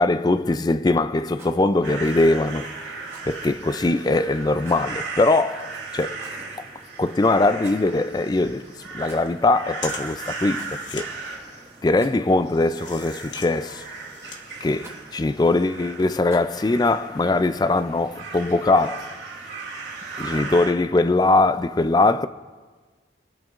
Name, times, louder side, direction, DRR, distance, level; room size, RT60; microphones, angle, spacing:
voice 1, 0.0-2.7 3.2-6.2 7.0-8.7 8.9-11.1 11.8-13.8 14.6-19.1 20.2-22.3, left 2 dB, 20° left, 0.3 m, -21 dB
Rattle, 1.3-1.6 3.0-3.3 4.6-4.9 6.1-6.5 7.5-7.9 9.0-9.4 9.7-9.8 10.5-10.8 11.9-12.4 13.3-13.7 14.8-15.1 16.2-16.6, right 3 dB, 15° right, 1.0 m, -47 dB
sound 1, 1.8-20.7, right 4 dB, 85° right, 2.9 m, -37 dB
sound 2, 8.9-15.3, left 5 dB, 70° left, 1.3 m, -42 dB
26.0 x 8.8 x 2.5 m
head